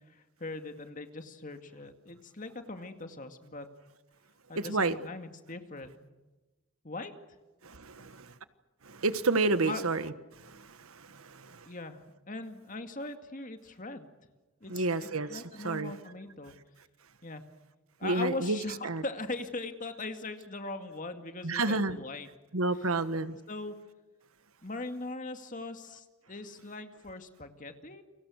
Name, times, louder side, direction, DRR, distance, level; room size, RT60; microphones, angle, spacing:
voice 1, 0.0-3.7 4.5-6.1 6.8-7.1 9.6-9.9 11.7-14.1 14.6-16.5 17.2-17.4 18.0-22.3 22.7-22.9 23.3-23.7 24.6-28.0, left 2 dB, 35° left, 7 dB, 2.2 m, -40 dB
voice 2, 4.6-4.9 7.6-8.3 8.8-10.1 10.4-11.7 14.7-15.9 18.0-18.6 18.8-19.0 21.4-22.0 22.5-23.4, right 3 dB, 75° right, 12 dB, 1.4 m, -30 dB
29.5 x 24.5 x 6.5 m, 1.2 s
head